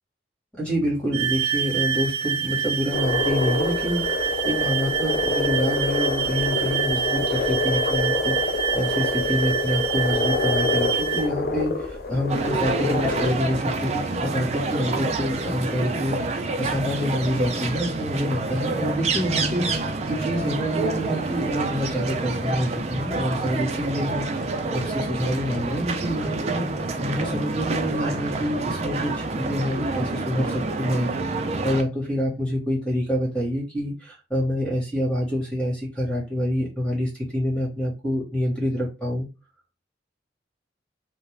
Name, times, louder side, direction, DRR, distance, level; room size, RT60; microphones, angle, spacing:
voice 1, 0.6-39.3, equal, 5° left, -3 dB, 1.1 m, -27 dB
sound 1, 1.1-11.3, right 8 dB, 75° right, 0.7 m, -27 dB
sound 2, 2.9-13.3, left 4 dB, 55° left, 0.5 m, -27 dB
sound 3, 12.3-31.8, right 3 dB, 35° right, 0.3 m, -27 dB
2.3 x 2.1 x 3.1 m, 0.28 s
head